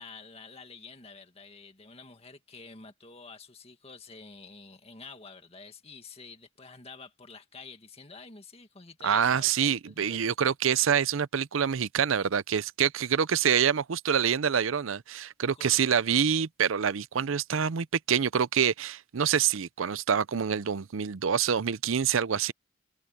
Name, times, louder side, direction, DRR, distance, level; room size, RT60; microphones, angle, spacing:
voice 1, 0.0-10.2 15.6-16.1, left 4 dB, 30° left, 2.0 m, -48 dB
voice 2, 9.0-22.5, right 7 dB, 75° right, 0.6 m, -26 dB
head